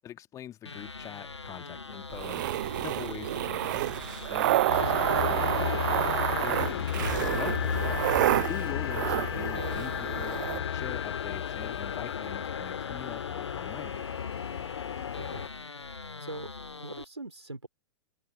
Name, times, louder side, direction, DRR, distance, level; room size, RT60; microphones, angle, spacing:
voice 1, 0.0-2.6 2.8-3.9 4.3-8.1 8.5-10.4 10.7-14.1, left 11 dB, 20° left, 1.5 m, -43 dB
sound 1, 0.6-17.0, left 4 dB, 85° left, 0.6 m, -43 dB
sound 2, 2.1-10.6, right 15 dB, 45° right, 0.4 m, -29 dB
sound 3, 4.7-15.5, left 9 dB, 60° left, 1.7 m, -33 dB
voice 2, 15.1-15.5 16.2-16.5 16.8-17.7, right 2 dB, 85° right, 3.8 m, -41 dB
figure-of-eight pair, 105°, 14 cm